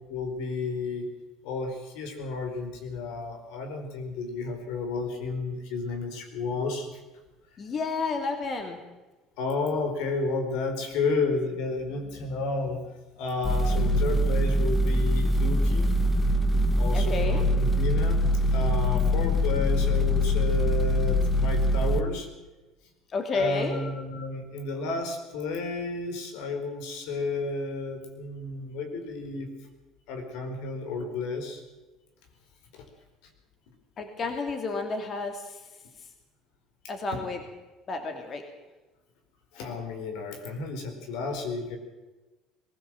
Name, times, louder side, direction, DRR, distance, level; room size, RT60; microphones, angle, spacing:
voice 1, 0.1-1.1 1.4-7.0 9.4-12.8 13.1-16.0 16.8-22.3 23.3-29.5 30.1-31.6 32.7-32.9 39.5-41.8, left 3 dB, 80° left, 5 dB, 4.7 m, -32 dB
voice 2, 7.6-8.8 13.9-14.0 16.9-17.4 23.1-23.8 34.0-35.6 36.9-37.4 37.9-38.4, left 4 dB, 40° left, 5 dB, 2.7 m, -31 dB
sound 1, 13.4-22.0, equal, 15° left, 1.6 m, -23 dB
22.0 x 16.0 x 7.7 m, 1.2 s
cardioid pair, 110°, 0 cm